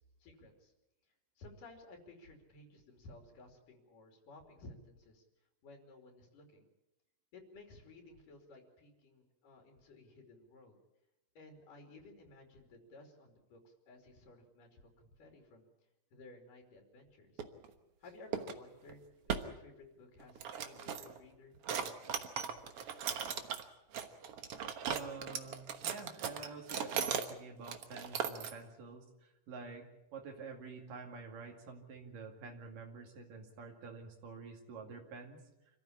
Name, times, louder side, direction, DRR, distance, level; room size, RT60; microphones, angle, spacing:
voice 1, 0.2-0.7 1.4-5.2 5.6-6.7 7.3-10.8 11.4-15.7 16.1-17.4 18.0-21.6, left 2 dB, 80° left, 3 dB, 4.3 m, -56 dB
sound 1, 17.4-17.7 18.3-18.6 18.9-19.0 19.3-19.5 20.2-21.2 21.6-23.6 23.9-27.3 27.6-28.5, right 7 dB, 55° right, 1.9 m, -38 dB
voice 2, 24.9-29.9 30.1-35.4, right 4 dB, 85° right, 2 dB, 4.0 m, -48 dB
26.5 x 14.5 x 8.6 m, 0.94 s
omnidirectional pair, 3.7 m